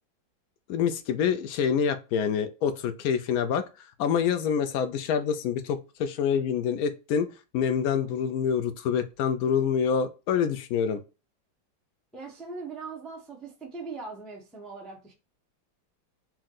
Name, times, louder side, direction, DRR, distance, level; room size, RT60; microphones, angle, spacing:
voice 1, 0.7-3.6 4.0-7.3 7.5-11.0, left 7 dB, 75° left, 0.8 m, -26 dB
voice 2, 12.1-15.1, right 4 dB, ahead, 0.7 m, -40 dB
4.5 x 2.2 x 3.7 m
omnidirectional pair, 2.0 m